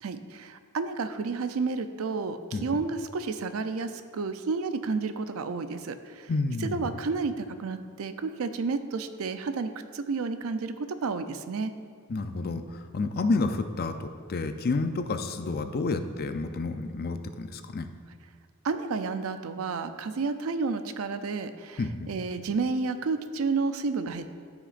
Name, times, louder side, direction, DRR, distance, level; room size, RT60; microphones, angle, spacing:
voice 1, 0.0-6.3 6.6-11.7 18.6-24.3, right 4 dB, 70° right, 10 dB, 0.5 m, -31 dB
voice 2, 6.3-7.0 12.1-12.6 12.9-17.8 21.8-22.1, left 3 dB, 45° left, 8 dB, 0.5 m, -30 dB
13.5 x 5.9 x 2.5 m, 2.1 s
head